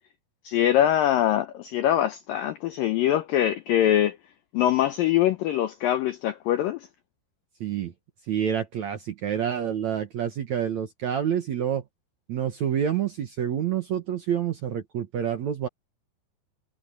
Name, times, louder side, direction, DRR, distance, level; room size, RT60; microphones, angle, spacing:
voice 1, 0.4-4.2 4.5-6.9, left 11 dB, 80° left, 2.0 m, -23 dB
voice 2, 7.6-7.9 8.3-11.8 12.3-15.7, right 9 dB, 65° right, 1.9 m, -28 dB
omnidirectional pair, 5.0 m